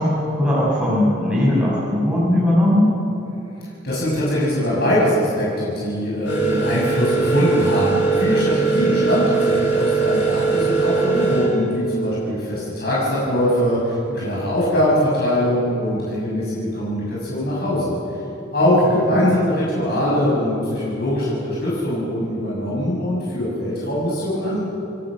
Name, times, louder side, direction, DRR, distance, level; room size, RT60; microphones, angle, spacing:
voice 1, 0.0-2.9 18.6-19.4, left 1 dB, 5° right, -8 dB, 6.9 m, -19 dB
voice 2, 3.8-18.0 18.5-24.6, left 1 dB, 55° left, -7 dB, 6.5 m, -22 dB
sound 1, 6.2-11.5, right 4 dB, 70° left, 7.7 m, -20 dB
28.0 x 21.0 x 6.4 m, 3.0 s
head